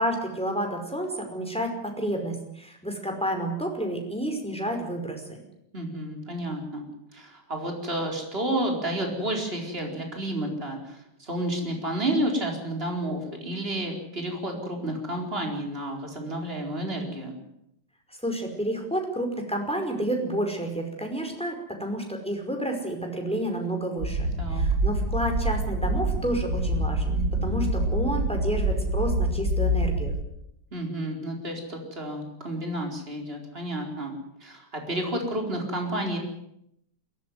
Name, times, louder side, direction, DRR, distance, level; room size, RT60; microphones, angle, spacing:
voice 1, 0.0-5.4 18.2-30.1, right 1 dB, 5° left, 3 dB, 5.2 m, -30 dB
voice 2, 5.7-17.4 24.4-24.6 30.7-34.1 34.4-36.2, right 1 dB, 30° right, 2 dB, 4.7 m, -31 dB
sound 1, 24.0-30.2, right 1 dB, 55° right, 2.3 m, -26 dB
22.5 x 17.5 x 9.6 m, 0.78 s
omnidirectional pair, 1.9 m